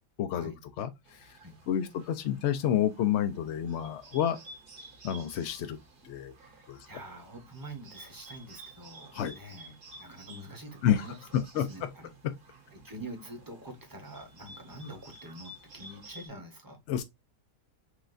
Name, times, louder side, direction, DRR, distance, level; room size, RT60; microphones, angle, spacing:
voice 1, 0.2-1.4 1.7-4.4 5.0-5.8 6.0-6.3 6.7-6.9 9.1-9.4 10.8-11.1 11.3-11.9 12.2-12.3 16.9-17.0, left 10 dB, 70° left, 0.6 m, -29 dB
Bird, 1.0-16.3, right 2 dB, 50° right, 1.5 m, -53 dB
voice 2, 6.4-11.2 11.5-12.1 12.7-16.8, right 1 dB, 15° right, 0.8 m, -46 dB
6.2 x 2.4 x 2.5 m
omnidirectional pair, 1.7 m